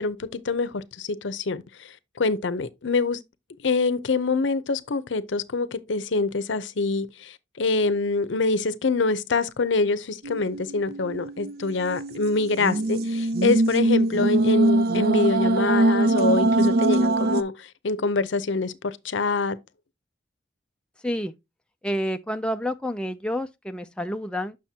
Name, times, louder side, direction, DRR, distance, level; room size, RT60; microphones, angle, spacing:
voice 1, 0.0-3.2 3.6-19.6, left 3 dB, 75° left, 0.6 m, -25 dB
sound 1, 10.2-17.4, right 2 dB, 55° right, 0.4 m, -23 dB
voice 2, 21.0-21.3 21.8-24.6, equal, 5° left, 0.3 m, -29 dB
7.4 x 6.3 x 2.8 m
head